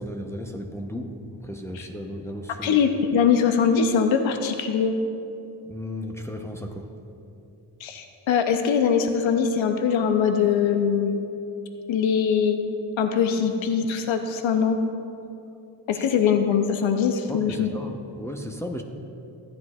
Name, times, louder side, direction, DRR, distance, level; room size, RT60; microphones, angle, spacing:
voice 1, 0.0-2.8 5.7-6.9 15.9-16.1 17.3-18.8, equal, 5° left, 3 dB, 0.8 m, -35 dB
voice 2, 2.6-5.0 7.8-11.3 11.9-12.6 13.0-14.8 15.9-17.7, left 7 dB, 85° left, 6 dB, 0.7 m, -22 dB
13.5 x 9.8 x 2.4 m, 2.8 s
cardioid pair, 55°, 46 cm